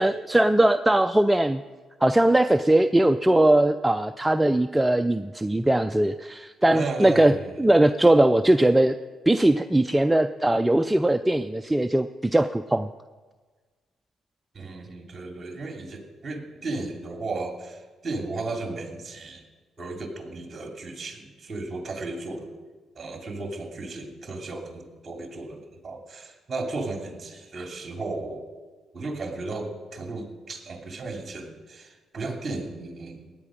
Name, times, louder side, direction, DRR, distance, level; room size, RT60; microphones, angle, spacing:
voice 1, 0.0-1.6 2.0-7.3 7.6-9.0 9.3-12.9, right 1 dB, 10° right, 9 dB, 0.4 m, -20 dB
voice 2, 6.7-7.6 14.5-19.4 19.8-22.5 23.0-28.5 28.9-33.3, right 3 dB, 35° right, 3 dB, 2.6 m, -35 dB
17.0 x 9.7 x 5.1 m, 1.4 s
cardioid pair, 90°, 0 cm